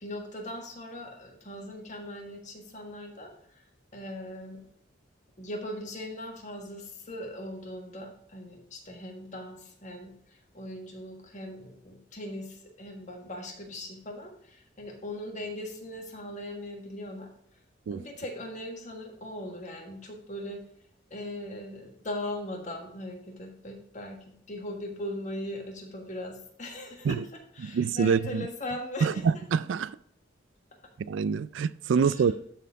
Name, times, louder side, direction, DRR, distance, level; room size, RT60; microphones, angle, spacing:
voice 1, 0.0-3.6 3.9-4.6 5.4-17.3 17.9-20.6 21.1-27.2 27.5-29.4 32.0-32.3, left 1 dB, 40° left, 1.5 m, -39 dB
voice 2, 27.6-28.5 29.0-30.0 31.1-32.3, right 6 dB, 70° right, 0.3 m, -26 dB
12.0 x 4.5 x 3.6 m
head